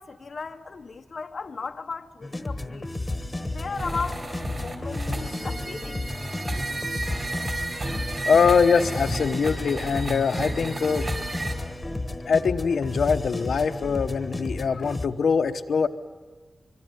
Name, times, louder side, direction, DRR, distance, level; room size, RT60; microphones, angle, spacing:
voice 1, 0.0-2.9 3.5-6.0 6.5-6.6, left 4 dB, 50° left, 0.8 m, -36 dB
sound 1, 2.2-15.1, left 2 dB, 15° left, 1.2 m, -32 dB
sound 2, 3.4-11.5, right 2 dB, 35° right, 4.4 m, -34 dB
voice 2, 8.3-11.1 12.3-15.9, left 5 dB, 80° left, 1.0 m, -23 dB
25.0 x 24.0 x 9.3 m
wide cardioid pair, 165°, 0 cm